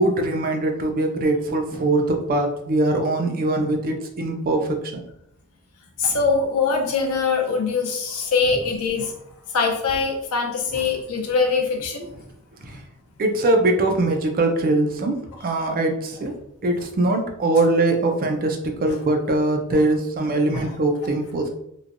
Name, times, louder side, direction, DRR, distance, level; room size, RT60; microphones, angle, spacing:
voice 1, 0.0-4.8 13.2-15.2 15.4-16.3 16.6-21.5, right 2 dB, 40° right, 4 dB, 0.4 m, -22 dB
voice 2, 6.0-9.1 9.5-12.0 18.9-19.0 20.5-20.7, left 4 dB, 85° left, 2 dB, 0.6 m, -23 dB
3.1 x 2.2 x 2.5 m, 0.77 s
head